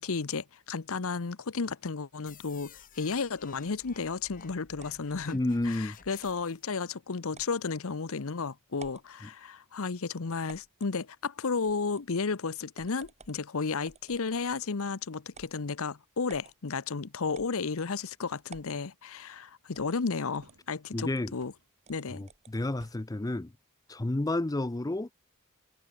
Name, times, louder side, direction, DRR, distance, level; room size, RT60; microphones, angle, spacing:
voice 1, 0.0-5.4 5.6-21.5 21.9-22.2, left 4 dB, 65° left, 0.8 m, -33 dB
sound 1, 2.3-6.7, left 6 dB, 40° left, 1.7 m, -54 dB
sound 2, 4.8-5.2 6.2-6.5 7.3-7.6 8.1-8.2 8.7-9.1 10.5-10.9 11.6-12.1 12.7-13.4 13.8-14.7 15.3-15.6 16.3-16.5 17.3-17.9 18.5-18.8 19.7-20.0 20.3-20.6 21.0-21.2 21.8-22.5, right 4 dB, 30° right, 6.3 m, -52 dB
voice 2, 5.3-6.0 20.9-21.3 22.1-23.5 23.9-25.1, left 2 dB, 15° left, 0.5 m, -30 dB
sound 3, 18.1-18.6 20.3-21.8 22.7-23.3, right 2 dB, 75° right, 5.1 m, -62 dB
head